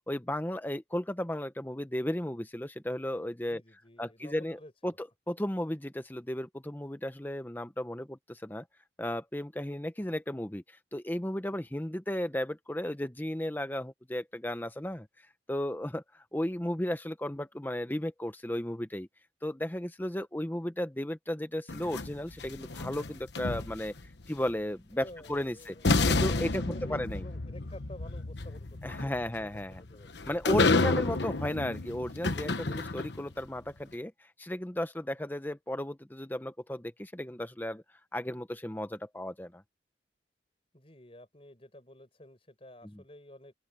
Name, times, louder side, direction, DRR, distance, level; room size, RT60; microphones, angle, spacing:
voice 1, 0.1-3.6 4.0-8.7 9.0-15.1 15.5-19.1 19.4-25.7 26.1-27.2 28.8-29.8 30.3-37.8 38.1-39.6 42.9-43.0, left 1 dB, 10° left, 0.8 m, -34 dB
voice 2, 3.5-5.0 24.9-30.1 40.7-43.5, left 1 dB, 30° left, 5.3 m, -51 dB
sound 1, 21.7-24.1 25.3-25.4 25.8-33.3, left 3 dB, 70° left, 1.2 m, -30 dB
open air
head